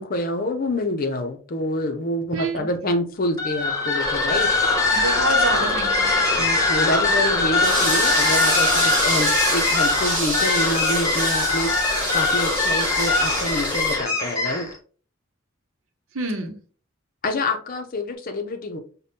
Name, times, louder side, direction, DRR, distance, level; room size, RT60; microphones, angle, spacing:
voice 1, 0.0-4.5 6.4-11.7 12.1-14.7 17.2-18.8, left 1 dB, 45° left, 6 dB, 0.5 m, -27 dB
voice 2, 2.3-2.7 4.9-6.4 16.1-16.6, right 2 dB, 85° right, 5 dB, 0.8 m, -28 dB
sound 1, 3.3-14.8, left 3 dB, 15° left, 1.1 m, -21 dB
sound 2, 7.6-14.0, right 1 dB, 20° right, 1.9 m, -27 dB
5.1 x 2.2 x 2.7 m, 0.40 s
head